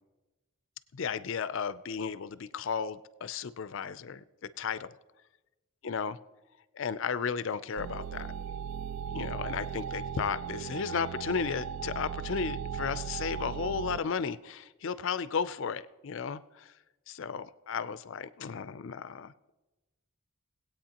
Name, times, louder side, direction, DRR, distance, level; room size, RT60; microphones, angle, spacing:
voice 1, 0.9-4.2 4.6-4.9 5.8-6.2 6.7-8.3 9.1-16.7 17.1-19.5, left 6 dB, 60° left, 15 dB, 0.4 m, -34 dB
sound 1, 7.8-14.0, right 7 dB, 80° right, 0.3 m, -37 dB
19.5 x 8.6 x 2.9 m, 1.1 s
head